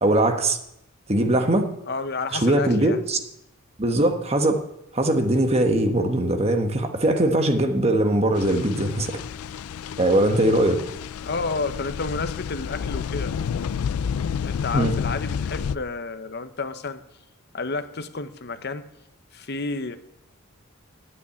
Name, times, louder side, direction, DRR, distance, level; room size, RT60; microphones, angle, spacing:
voice 1, 0.0-0.6 1.1-1.7 2.3-3.2 3.8-4.6 4.9-9.2 10.0-10.8 14.7-14.9, right 1 dB, 30° right, 5 dB, 1.2 m, -21 dB
voice 2, 1.9-3.0 11.2-13.3 14.4-17.0 17.5-18.9 19.3-20.0, left 3 dB, 50° left, 10 dB, 0.9 m, -30 dB
sound 1, 8.4-15.8, left 7 dB, 90° left, 0.4 m, -30 dB
9.6 x 8.8 x 8.5 m, 0.80 s
head